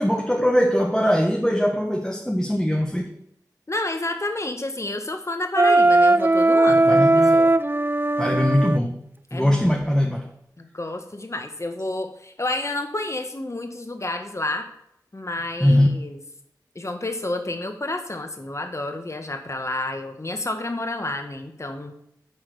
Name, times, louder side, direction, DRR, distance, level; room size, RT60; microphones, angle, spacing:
voice 1, 0.0-3.1 6.7-7.4 8.2-9.0 9.3-10.3 15.6-15.9, equal, 5° left, 1 dB, 1.4 m, -21 dB
voice 2, 3.7-7.5 9.3-9.7 10.6-14.7 15.1-16.2 16.7-21.9, left 2 dB, 45° left, 6 dB, 1.5 m, -30 dB
Wind instrument woodwind instrument, 5.6-8.8, right 2 dB, 30° right, 0.4 m, -18 dB
9.8 x 4.4 x 6.8 m, 0.75 s
cardioid pair, 40°, 7 cm